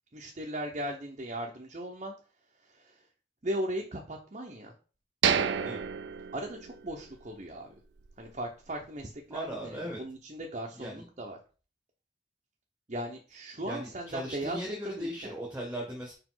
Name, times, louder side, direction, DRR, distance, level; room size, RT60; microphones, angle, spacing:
voice 1, 0.1-2.2 2.6-3.1 3.4-4.7 6.3-7.7 8.2-11.4 12.9-15.3, right 1 dB, 40° right, 0 dB, 0.9 m, -38 dB
sound 1, 5.2-7.2 7.5-7.6 8.1-8.3, right 7 dB, 80° right, 0.5 m, -30 dB
voice 2, 9.3-10.0 10.7-11.1 13.6-16.1, equal, 10° right, 0 dB, 1.2 m, -38 dB
5.0 x 4.9 x 3.8 m, 0.36 s
head